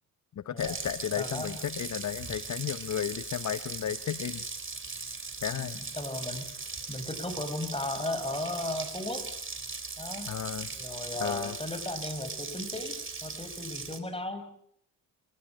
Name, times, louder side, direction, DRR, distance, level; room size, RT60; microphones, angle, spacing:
voice 1, 0.4-4.4 5.4-5.8 10.3-10.7 11.2-11.6, left 9 dB, 45° left, 15 dB, 1.0 m, -33 dB
Water tap faucet, 0.6-14.0, right 4 dB, 30° right, 4.2 m, -39 dB
voice 2, 1.2-1.5 5.5-6.5 6.9-9.2 10.0-10.3 10.7-12.9 13.2-14.6, left 2 dB, 15° left, 9 dB, 6.8 m, -36 dB
29.0 x 16.5 x 8.9 m, 0.69 s
supercardioid pair, 55°, 40 cm